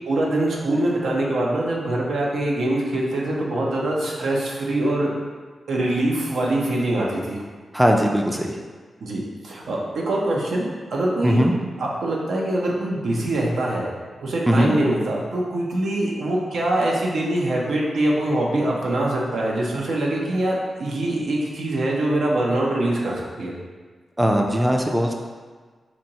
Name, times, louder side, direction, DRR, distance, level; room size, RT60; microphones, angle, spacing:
voice 1, 0.1-5.1 5.7-7.4 9.0-11.4 11.8-13.9 14.2-23.5, right 1 dB, 85° right, -3 dB, 0.7 m, -23 dB
voice 2, 7.7-8.5 11.2-11.5 14.5-14.7 24.2-25.1, equal, 10° right, 1 dB, 0.4 m, -19 dB
4.4 x 2.6 x 2.8 m, 1.5 s
cardioid pair, 75°, 0 cm